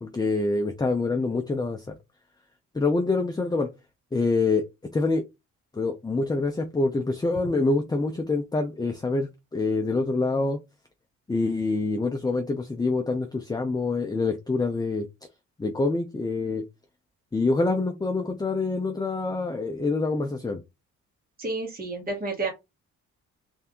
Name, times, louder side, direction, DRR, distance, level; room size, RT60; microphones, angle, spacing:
voice 1, 0.0-1.9 2.7-3.7 4.1-4.7 4.9-5.2 5.7-10.6 11.3-15.1 15.6-16.6 17.3-20.6, left 3 dB, 15° left, 0.6 m, -26 dB
voice 2, 21.4-22.5, right 3 dB, 30° right, 1.6 m, -30 dB
3.5 x 2.7 x 3.7 m
cardioid pair, 90°, 30 cm